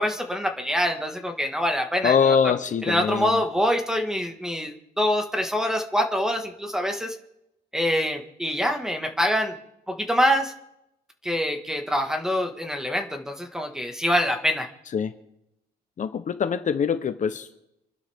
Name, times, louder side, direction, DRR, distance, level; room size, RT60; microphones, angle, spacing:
voice 1, 0.0-2.4 2.8-7.2 7.7-9.6 9.9-10.5 11.2-14.7, equal, 5° right, 4 dB, 1.7 m, -25 dB
voice 2, 2.0-3.4 14.9-15.2 16.0-17.5, left 7 dB, 50° left, 9 dB, 0.9 m, -23 dB
27.0 x 11.5 x 3.6 m, 0.84 s
cardioid pair, 115°, 17 cm